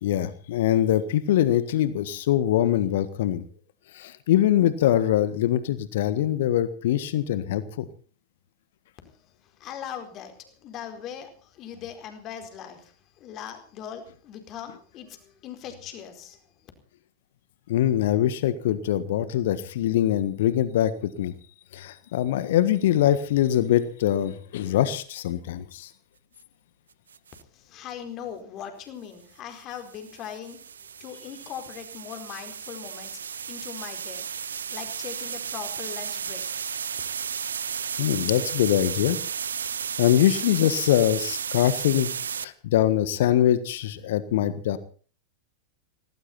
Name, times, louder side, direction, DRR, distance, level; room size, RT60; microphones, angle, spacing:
voice 1, 0.0-3.4 3.9-7.8 17.7-21.3 21.7-25.9 38.0-39.2 40.0-42.1 42.4-44.8, left 12 dB, 55° left, 14 dB, 1.5 m, -23 dB
voice 2, 9.1-16.7 27.5-30.6 31.0-33.2 33.5-34.3 34.7-36.4, left 9 dB, 35° left, 7 dB, 4.5 m, -40 dB
sound 1, 27.1-27.4 29.6-42.4, right 7 dB, 70° right, 0.7 m, -33 dB
18.5 x 18.0 x 4.3 m, 0.41 s
figure-of-eight pair, 90°, 0 cm